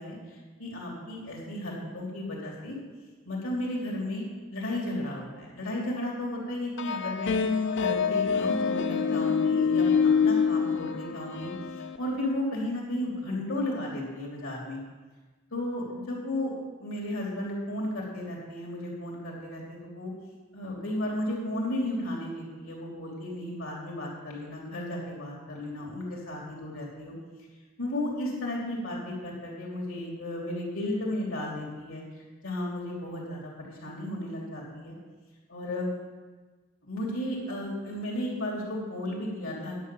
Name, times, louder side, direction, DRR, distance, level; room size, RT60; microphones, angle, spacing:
voice 1, 0.0-2.8 3.2-4.2 4.5-14.8 15.5-16.5 16.8-20.1 20.5-27.1 27.8-32.0 32.4-35.0 35.5-35.9 36.9-39.8, left 1 dB, 85° left, -2 dB, 3.2 m, -34 dB
sound 1, 6.8-12.0, left 6 dB, 60° left, 0.5 m, -26 dB
10.0 x 5.6 x 8.5 m, 1.3 s
head